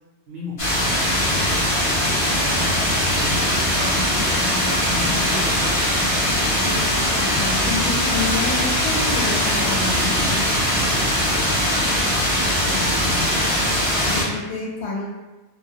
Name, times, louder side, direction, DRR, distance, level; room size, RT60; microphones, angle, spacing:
voice 1, 0.3-0.8 3.0-6.0 10.2-12.3 14.1-14.3, left 1 dB, 60° right, -6 dB, 0.5 m, -35 dB
sound 1, 0.6-14.2, equal, 40° left, 0.5 m, -21 dB
voice 2, 2.3-2.9 7.2-10.4 12.6-12.8 13.1-13.6 14.1-15.1, left 3 dB, 70° left, -3 dB, 0.8 m, -29 dB
2.2 x 2.1 x 2.8 m, 1.1 s
omnidirectional pair, 1.2 m